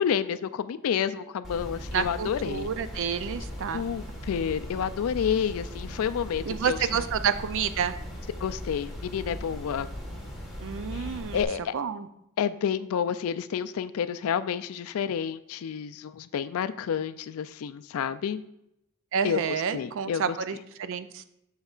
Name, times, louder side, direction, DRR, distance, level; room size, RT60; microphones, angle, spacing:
voice 1, 0.0-2.7 3.7-7.0 8.4-9.9 10.9-11.1 11.3-11.7 12.4-18.4 19.2-20.4, left 8 dB, 65° left, 13 dB, 0.3 m, -29 dB
sound 1, 1.4-11.4, equal, ahead, 1.4 m, -39 dB
voice 2, 1.9-3.8 6.5-8.0 10.6-11.5 11.7-12.1 19.1-21.2, right 7 dB, 60° right, 12 dB, 0.4 m, -29 dB
7.9 x 6.4 x 2.4 m, 0.80 s
head